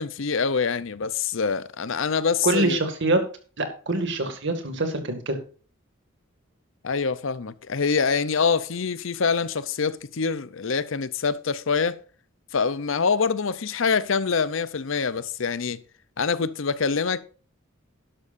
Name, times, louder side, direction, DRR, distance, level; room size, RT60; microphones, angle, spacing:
voice 1, 0.0-2.8 6.8-12.0 12.5-15.8 16.2-17.2, left 5 dB, 65° left, 0.7 m, -25 dB
voice 2, 2.4-3.2 3.6-5.4, right 2 dB, 60° right, 2.2 m, -24 dB
12.5 x 11.0 x 2.6 m
head